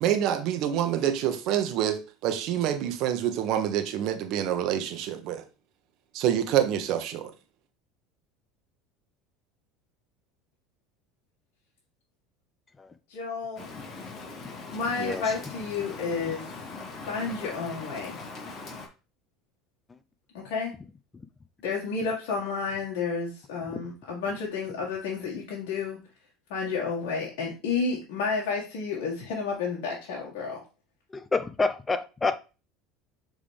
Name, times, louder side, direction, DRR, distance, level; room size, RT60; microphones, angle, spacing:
voice 1, 0.0-5.4 6.1-7.3, right 10 dB, 60° right, 1.1 m, -27 dB
voice 2, 13.1-13.7 14.7-16.5 17.1-18.2 20.3-20.7 21.6-26.0 26.5-30.6, left 5 dB, 70° left, 1.7 m, -31 dB
Rain, 13.6-18.9, left 3 dB, 45° left, 2.4 m, -41 dB
voice 3, 31.1-32.4, left 3 dB, 20° left, 0.7 m, -28 dB
7.3 x 3.9 x 3.4 m
hypercardioid pair, 90°, 0 cm